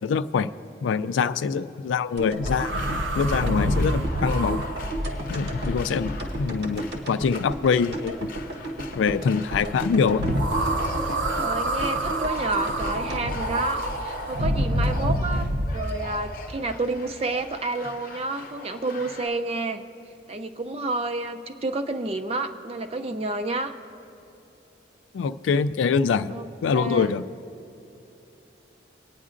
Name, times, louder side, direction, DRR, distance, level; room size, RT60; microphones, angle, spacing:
voice 1, 0.0-0.5 0.8-2.8 3.2-4.6 5.3-8.3 9.0-10.3 25.1-27.2, left 5 dB, 85° left, 12 dB, 0.3 m, -24 dB
sound 1, 2.2-14.4 14.6-14.7, right 1 dB, 60° right, 1.1 m, -34 dB
sound 2, 2.4-6.7 10.2-15.8, right 1 dB, 80° right, 0.7 m, -27 dB
sound 3, 2.5-19.3, left 3 dB, 45° left, 0.7 m, -42 dB
voice 2, 11.4-19.8 20.3-23.8 26.3-27.2, right 2 dB, 30° right, 8 dB, 0.4 m, -30 dB
23.0 x 9.5 x 2.5 m, 2.8 s
head